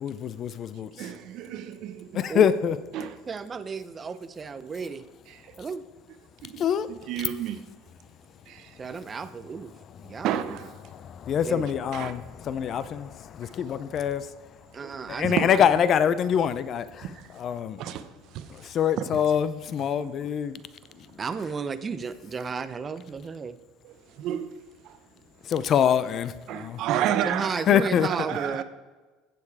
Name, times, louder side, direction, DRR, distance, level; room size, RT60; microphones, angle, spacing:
voice 1, 0.0-0.9 2.4-2.8 6.6-6.9 11.0-14.3 15.2-17.0 17.4-17.8 18.6-20.6 25.5-26.8 27.7-28.1, left 8 dB, 35° left, 0.5 m, -24 dB
voice 2, 1.0-2.2 2.9-3.2 4.1-4.2 5.3-5.6 6.4-7.7 8.5-8.8 10.2-10.8 11.9-12.2 13.4-13.5 14.7-14.9 15.2-15.5 17.0-17.4 17.8-19.5 19.8-20.1 21.1-21.2 23.8-24.6 24.8-25.0 26.5-27.5 28.0-28.6, right 10 dB, 50° right, 0.8 m, -32 dB
voice 3, 3.3-5.0 5.6-5.8 8.8-9.7 10.0-10.6 11.5-11.7 14.7-15.5 20.2-20.3 21.2-23.6 27.3-28.6, right 5 dB, 20° right, 0.6 m, -33 dB
15.5 x 7.0 x 4.8 m
cardioid pair, 150°, 0 cm